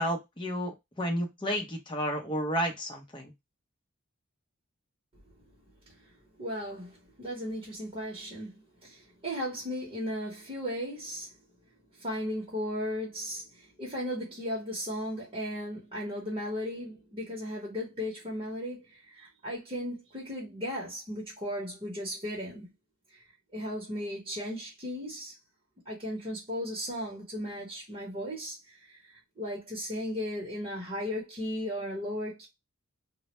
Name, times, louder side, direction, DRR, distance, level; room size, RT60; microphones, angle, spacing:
voice 1, 0.0-3.3, equal, 20° left, 0.7 m, -31 dB
voice 2, 6.4-11.3 12.0-22.7 23.1-23.2 23.5-25.3 25.9-32.5, equal, 30° right, 0.9 m, -36 dB
2.1 x 2.1 x 2.9 m
head